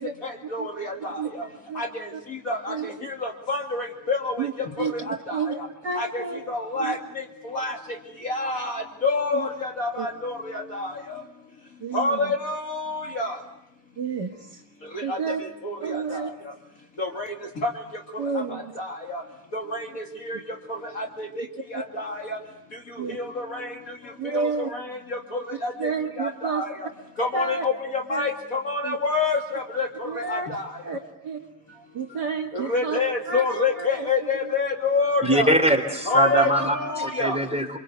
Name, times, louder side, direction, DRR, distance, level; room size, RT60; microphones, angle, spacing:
voice 1, 0.2-1.5 1.7-5.7 6.0-8.0 8.2-11.2 11.9-13.4 14.9-16.3 17.0-17.8 18.1-19.2 19.5-20.4 20.7-21.5 21.7-22.4 23.0-24.0 24.2-25.9 26.2-26.9 27.2-30.7 32.5-35.5 36.0-37.4, left 3 dB, 40° left, 2 dB, 2.8 m, -28 dB
voice 2, 5.8-6.4 6.8-7.0 9.3-9.5 10.0-10.1 11.8-12.3 14.0-14.6 15.0-15.4 15.8-16.3 18.2-18.7 21.7-21.8 23.0-23.2 24.2-24.7 25.8-26.6 27.3-27.6 28.1-28.3 28.8-29.0 30.1-30.5 30.8-31.4 31.9-33.0 33.3-33.4 33.8-34.3 36.1-36.5 36.8-37.1, right 5 dB, 50° right, 3 dB, 2.4 m, -30 dB
voice 3, 35.2-37.8, right 1 dB, 5° right, 3 dB, 3.4 m, -22 dB
29.0 x 25.0 x 8.2 m, 0.80 s
omnidirectional pair, 2.4 m